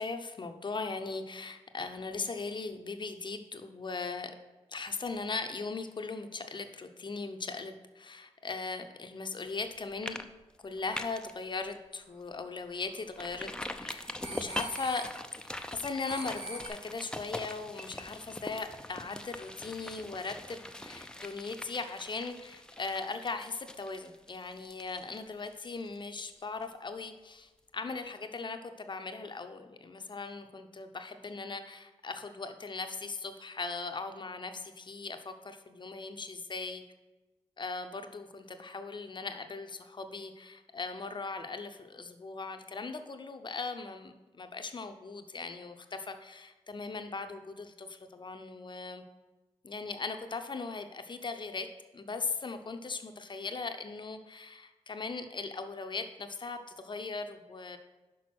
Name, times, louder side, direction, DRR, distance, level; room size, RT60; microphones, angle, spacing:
voice 1, 0.0-4.3 4.7-10.2 10.6-13.5 13.8-15.1 15.7-36.8 37.6-49.0 49.6-51.7 51.9-57.8, left 4 dB, 40° left, 7 dB, 0.7 m, -39 dB
sound 1, 9.5-9.7 10.0-10.2 10.5-11.3 11.8-11.9 12.3-12.4 13.2-26.7 27.0-27.1, left 1 dB, 5° left, 0.5 m, -43 dB
sound 2, 12.8-13.0 14.2-15.0 16.1-16.7, right 1 dB, 60° right, 2.6 m, -41 dB
6.1 x 5.3 x 6.0 m, 1.1 s
cardioid pair, 55°, 12 cm